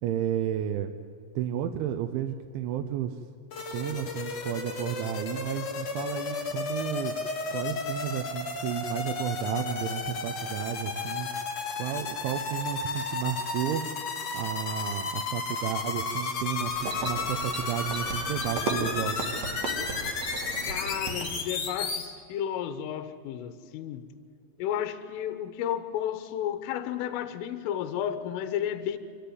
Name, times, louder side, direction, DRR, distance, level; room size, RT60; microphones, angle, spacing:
voice 1, 0.0-0.9 1.4-3.2 3.7-7.1 7.5-11.3 11.8-13.8 14.3-19.1, right 10 dB, 80° right, 6 dB, 3.0 m, -32 dB
sound 1, 3.5-22.1, left 4 dB, 45° left, 2.5 m, -33 dB
sound 2, 16.6-21.5, right 3 dB, 55° right, 2.1 m, -36 dB
voice 2, 20.7-24.1 24.6-29.0, left 10 dB, 80° left, 10 dB, 3.7 m, -32 dB
26.5 x 14.0 x 9.4 m, 2.4 s
omnidirectional pair, 5.8 m